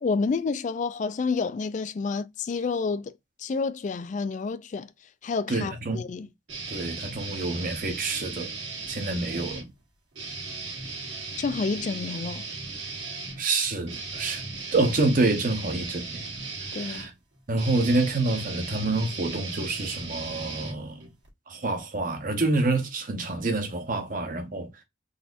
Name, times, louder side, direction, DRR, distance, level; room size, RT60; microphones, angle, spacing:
voice 1, 0.0-3.1 3.4-4.9 5.2-6.3 11.4-12.5 16.7-17.1, left 4 dB, 40° left, 0.3 m, -29 dB
voice 2, 5.5-6.0 6.7-8.5 8.9-9.7 13.4-14.4 14.7-16.2 16.7-17.1 17.5-21.1 21.5-24.7, right 2 dB, 45° right, 0.9 m, -27 dB
sound 1, 6.5-9.7 10.1-21.3, right 3 dB, 75° right, 1.5 m, -37 dB
4.0 x 2.8 x 2.4 m
head